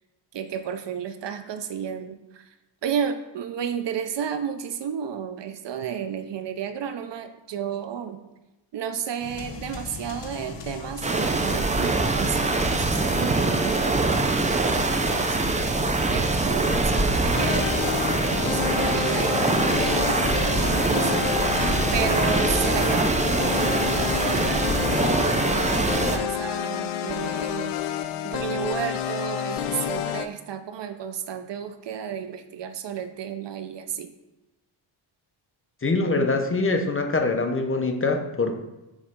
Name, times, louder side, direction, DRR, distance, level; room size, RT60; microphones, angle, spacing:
voice 1, 0.3-2.4 2.8-8.2 8.7-15.8 16.1-17.8 18.3-27.8 28.2-34.1, right 8 dB, 60° right, 9 dB, 0.6 m, -32 dB
sound 1, 9.2-25.2, left 4 dB, 60° left, 1.0 m, -38 dB
sound 2, 11.0-26.2, right 3 dB, 15° right, 0.4 m, -23 dB
sound 3, 17.3-30.3, left 10 dB, 90° left, 0.6 m, -29 dB
voice 2, 35.8-38.6, left 3 dB, 25° left, 4 dB, 0.7 m, -24 dB
7.1 x 3.2 x 5.1 m, 1.0 s
wide cardioid pair, 125°, 48 cm